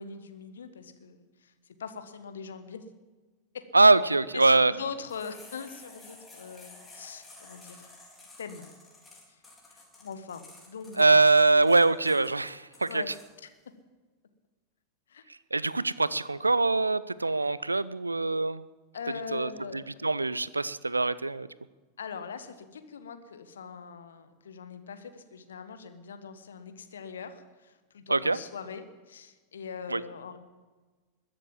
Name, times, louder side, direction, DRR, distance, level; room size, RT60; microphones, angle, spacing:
voice 1, 0.0-1.5 1.8-2.8 3.5-3.6 4.3-7.9 8.4-8.7 9.3-9.4 9.7-11.2 12.8-13.1 15.1-15.2 18.9-20.1 22.0-30.4, left 6 dB, 65° left, 9 dB, 1.3 m, -42 dB
voice 2, 3.7-4.7 11.0-13.0 15.5-18.6 19.3-21.5 28.1-28.4 29.9-30.0, right 3 dB, 80° right, 18 dB, 0.5 m, -23 dB
sound 1, 5.1-13.2, left 2 dB, 15° left, 4.1 m, -52 dB
21.0 x 7.5 x 7.4 m, 1.3 s
figure-of-eight pair, 90°, 0 cm